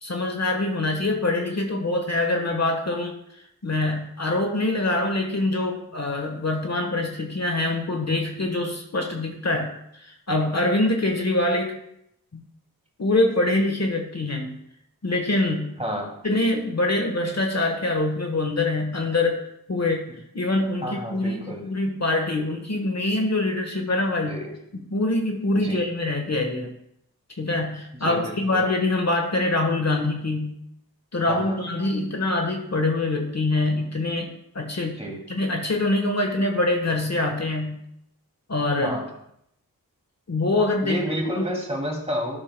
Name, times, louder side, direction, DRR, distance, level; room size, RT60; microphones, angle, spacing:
voice 1, 0.0-3.2 3.6-11.7 12.3-12.4 13.0-14.5 15.0-15.7 16.2-19.4 19.7-20.1 20.3-24.4 24.9-26.7 27.3-30.6 31.1-35.0 35.3-37.8 38.5-38.9 40.3-41.0 41.3-41.6, left 2 dB, 45° left, 3 dB, 1.3 m, -24 dB
voice 2, 15.8-16.1 20.1-20.2 20.8-21.6 24.3-24.5 25.5-25.8 27.9-28.7 31.3-31.6 35.0-35.2 38.8-39.0 40.8-42.4, equal, 20° right, 0 dB, 2.4 m, -30 dB
12.5 x 6.4 x 2.2 m, 0.75 s
cardioid pair, 40°, 35 cm